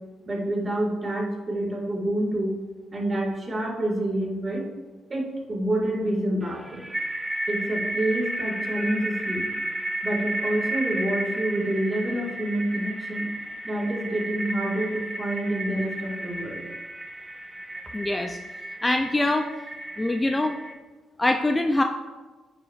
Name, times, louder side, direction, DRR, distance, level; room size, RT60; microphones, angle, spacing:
voice 1, 0.3-2.6 2.9-4.6 5.1-6.8 7.5-9.5 10.0-13.3 13.6-16.6, right 1 dB, 30° right, -1 dB, 1.9 m, -27 dB
sound 1, 6.4-20.7, right 1 dB, 15° right, 0.7 m, -33 dB
voice 2, 17.9-18.4 18.8-19.5 20.0-20.6 21.2-21.8, left 2 dB, 15° left, 5 dB, 0.4 m, -23 dB
9.1 x 5.6 x 2.4 m, 1.3 s
cardioid pair, 90°, 0 cm